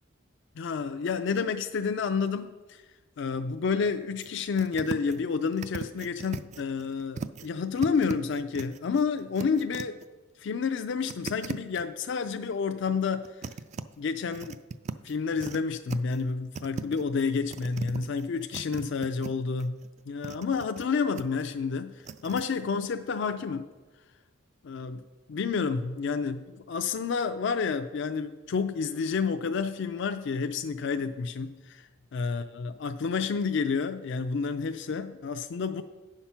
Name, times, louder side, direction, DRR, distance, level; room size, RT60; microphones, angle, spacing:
voice 1, 0.6-2.8 3.2-10.0 10.4-13.5 14.0-14.6 15.0-19.8 20.1-23.7 24.6-25.0 25.3-35.8, left 5 dB, 60° left, 8 dB, 0.4 m, -30 dB
sound 1, 4.2-4.3 4.6-5.2 5.5-7.5 7.7-10.0 11.0-11.8 13.0-13.8 14.3-15.6 15.9-16.3 16.5-19.3 19.6-20.8 21.2-21.4 22.0-22.4, right 5 dB, 35° right, 0.3 m, -38 dB
9.4 x 5.7 x 5.8 m, 1.2 s
head